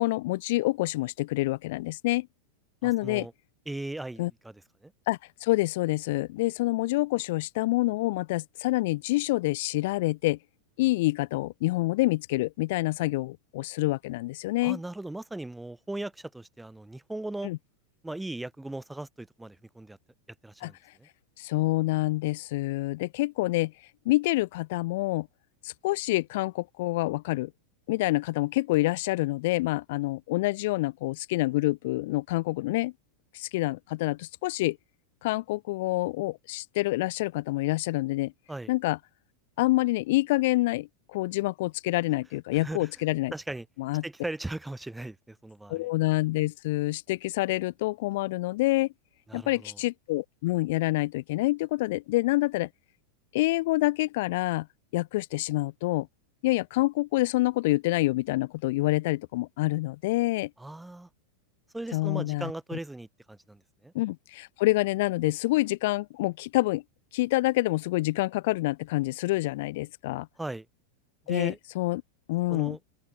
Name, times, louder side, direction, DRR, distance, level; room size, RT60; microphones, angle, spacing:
voice 1, 0.0-2.3 2.8-3.3 4.2-4.3 5.1-10.4 10.8-14.8 17.4-17.6 20.6-20.7 21.4-23.7 24.0-25.3 25.6-27.5 27.9-32.9 33.3-34.8 35.2-38.3 38.7-39.0 39.6-43.3 43.8-44.0 45.7-48.9 49.3-52.7 53.3-54.7 54.9-56.1 56.4-60.5 61.9-62.5 63.9-66.8 67.1-70.3 71.3-72.0 72.3-72.8, left 19 dB, 65° left, 0.7 m, -27 dB
voice 2, 2.8-3.3 3.7-4.9 14.6-17.5 18.0-20.0 20.4-21.1 38.5-38.7 42.5-42.9 43.3-43.7 44.0-45.9 49.3-49.8 60.6-61.1 61.7-63.9 70.4-70.7 71.3-71.6 72.5-72.8, right 2 dB, 5° right, 1.1 m, -38 dB
open air
supercardioid pair, 130°, 0 cm